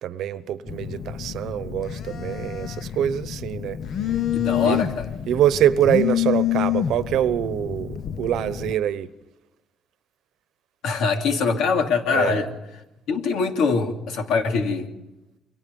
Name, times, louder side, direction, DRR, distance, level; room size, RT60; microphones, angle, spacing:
voice 1, 0.0-3.8 4.6-4.8 5.3-9.1 12.1-12.4, right 11 dB, 75° right, 1.0 m, -24 dB
Telephone, 0.7-8.7, left 11 dB, 60° left, 0.8 m, -28 dB
voice 2, 4.3-5.1 10.8-12.5 13.1-14.9, left 5 dB, 90° left, 2.8 m, -23 dB
29.5 x 24.0 x 5.4 m
cardioid pair, 125°, 0 cm